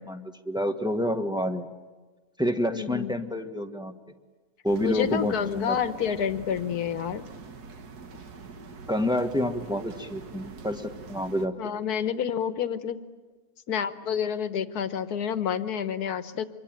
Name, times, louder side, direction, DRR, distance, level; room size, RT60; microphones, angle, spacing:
voice 1, 0.0-1.7 2.4-3.9 4.6-5.8 8.8-11.5, left 1 dB, 5° right, 4 dB, 1.4 m, -28 dB
voice 2, 2.7-3.1 4.8-7.3 11.6-13.0 13.7-16.5, left 8 dB, 80° left, 11 dB, 1.6 m, -29 dB
sound 1, 4.7-11.5, right 4 dB, 80° right, 2.0 m, -44 dB
26.0 x 23.0 x 8.9 m, 1.2 s
omnidirectional pair, 1.6 m